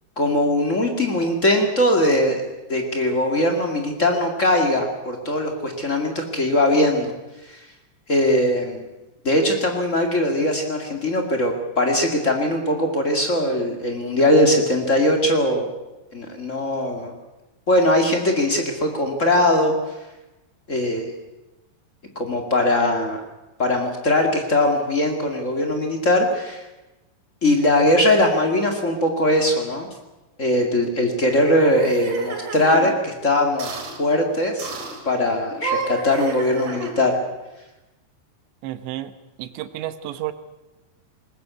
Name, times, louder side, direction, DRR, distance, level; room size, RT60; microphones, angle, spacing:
voice 1, 0.2-7.1 7.4-7.6 8.1-8.9 9.2-15.7 16.1-17.1 17.7-19.7 20.7-21.1 22.1-23.2 23.6-26.6 27.4-29.9 30.4-33.7 34.0-34.7 35.0-37.2, left 1 dB, 60° left, 3 dB, 0.7 m, -20 dB
sound 1, 31.3-33.0 33.6-34.0 34.6-35.0 35.5-37.2, right 4 dB, 60° right, 5.0 m, -30 dB
voice 2, 38.6-39.1 39.4-40.3, right 13 dB, 80° right, 12 dB, 3.3 m, -31 dB
20.5 x 20.5 x 8.3 m, 1.0 s
omnidirectional pair, 5.2 m